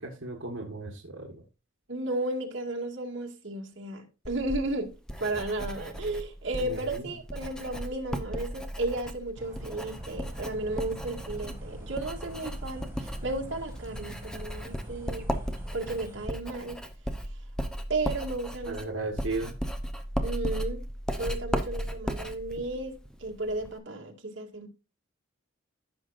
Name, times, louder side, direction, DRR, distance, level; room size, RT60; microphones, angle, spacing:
voice 1, 0.0-1.4 6.6-7.1 18.7-19.5, right 2 dB, 80° right, 1.6 m, -35 dB
voice 2, 1.9-4.9 5.2-15.3 15.7-16.8 17.9-18.8 20.2-20.8 21.2-24.7, right 2 dB, 65° right, 2.1 m, -34 dB
Writing, 4.2-23.8, equal, 5° left, 0.8 m, -36 dB
sound 1, 9.3-16.3, right 1 dB, 10° right, 2.2 m, -45 dB
15.0 x 5.9 x 2.6 m
head